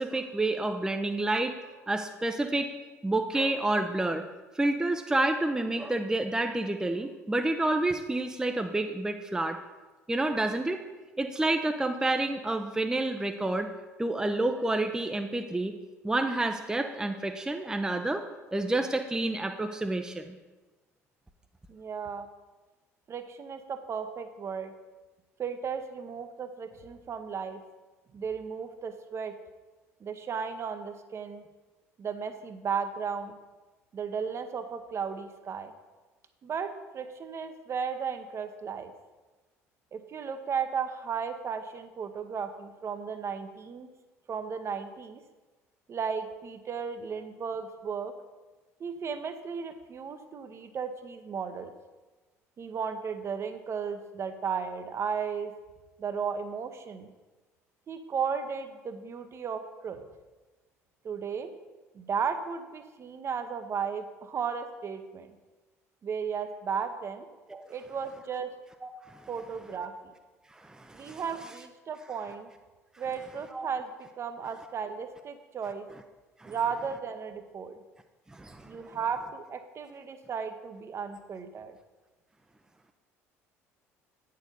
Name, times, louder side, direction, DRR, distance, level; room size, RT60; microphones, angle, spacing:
voice 1, 0.0-1.5 1.9-2.7 3.0-4.2 4.5-9.6 10.1-10.8 11.2-13.7 14.0-15.7 16.0-18.2 18.5-20.4 67.5-67.6 68.8-69.2 70.5-71.2 73.5-73.6 76.4-76.6 78.3-78.8, right 2 dB, 10° right, 6 dB, 0.6 m, -29 dB
voice 2, 21.7-22.3 23.1-24.7 25.4-27.6 28.1-29.3 30.0-31.4 32.0-33.4 33.9-35.7 36.4-38.9 39.9-43.9 44.3-45.2 45.9-48.1 48.8-51.7 52.6-55.5 56.0-57.1 57.9-60.0 61.0-61.5 61.9-65.3 66.0-67.3 67.7-68.5 69.3-69.9 70.9-72.5 73.0-73.9 74.2-75.9 76.4-77.8 78.7-81.7, right 6 dB, 35° right, 9 dB, 0.9 m, -35 dB
9.1 x 6.6 x 5.3 m, 1.2 s
figure-of-eight pair, 55°, 8 cm